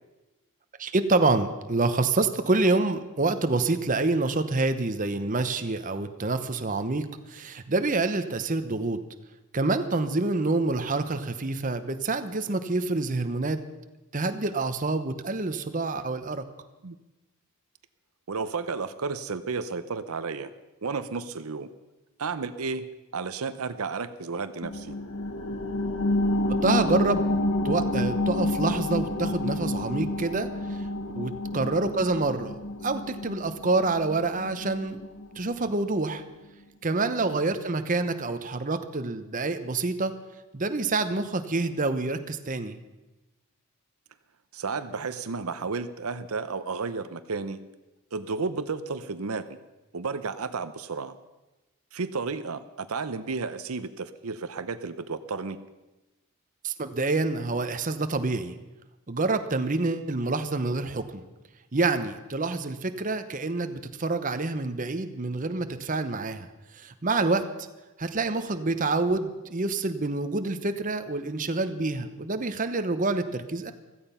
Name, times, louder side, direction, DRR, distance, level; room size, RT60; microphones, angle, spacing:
voice 1, 0.8-9.0 9.5-13.6 14.1-16.4 26.6-27.3 27.6-30.5 31.1-32.5 32.8-35.0 35.4-36.2 36.8-40.1 40.5-42.8 56.6-58.5 59.1-61.2 61.7-66.5 66.8-67.5 68.0-73.7, right 3 dB, 35° right, 9 dB, 0.9 m, -27 dB
voice 2, 18.3-20.5 20.8-21.7 22.2-22.9 23.1-25.0 31.5-31.7 37.2-37.4 44.5-47.6 48.1-49.6 49.9-51.2 51.9-55.6, right 4 dB, 75° right, 12 dB, 0.7 m, -32 dB
sound 1, 24.6-35.7 36.1-36.2, left 1 dB, 75° left, 1.4 m, -29 dB
16.0 x 14.0 x 5.6 m, 1.1 s
head